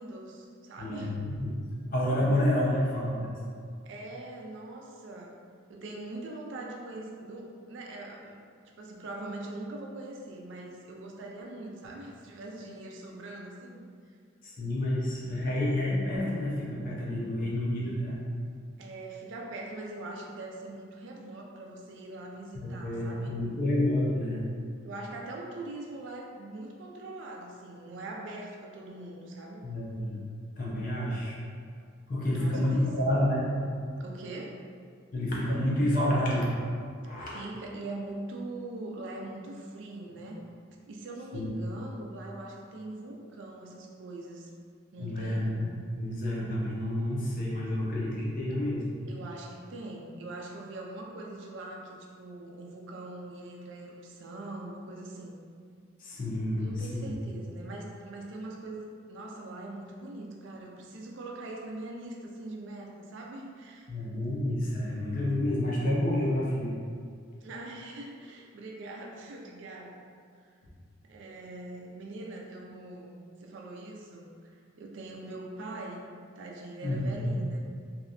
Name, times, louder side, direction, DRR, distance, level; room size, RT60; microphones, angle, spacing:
voice 1, 0.0-1.2 3.9-5.4 5.7-13.9 18.8-23.4 24.8-29.6 32.3-32.9 34.0-34.6 37.2-40.5 40.9-44.5 44.9-45.6 49.1-55.4 56.6-63.9 67.4-70.0 71.1-74.5 74.8-77.6, right 2 dB, 65° right, -1 dB, 0.4 m, -42 dB
voice 2, 0.8-1.7 1.9-3.4 14.4-18.2 22.5-24.4 29.6-30.2 30.6-31.4 32.1-33.5 35.1-36.5 37.0-37.4 41.3-41.5 45.0-45.7 45.9-48.9 56.0-57.1 63.9-66.7 76.8-77.4, left 1 dB, 40° left, -5 dB, 0.5 m, -29 dB
2.7 x 2.2 x 2.4 m, 2.1 s
head